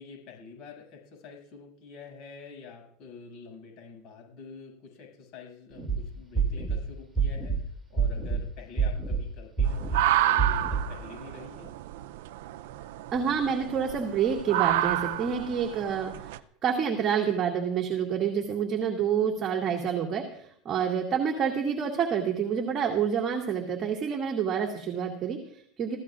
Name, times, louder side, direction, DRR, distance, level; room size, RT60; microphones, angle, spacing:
voice 1, 0.0-11.7, left 5 dB, 55° left, 1 dB, 7.4 m, -47 dB
sound 1, 5.8-6.0 6.3-6.8 7.2-7.6 8.0-8.4 8.8-9.2 9.6-10.0 10.4-10.8, right 6 dB, 10° right, 2.9 m, -26 dB
sound 2, 9.7-16.4, right 14 dB, 80° right, 0.6 m, -30 dB
voice 2, 13.1-26.0, right 7 dB, 35° right, 0 dB, 2.4 m, -28 dB
25.5 x 16.0 x 2.5 m, 0.65 s
supercardioid pair, 125°, 0 cm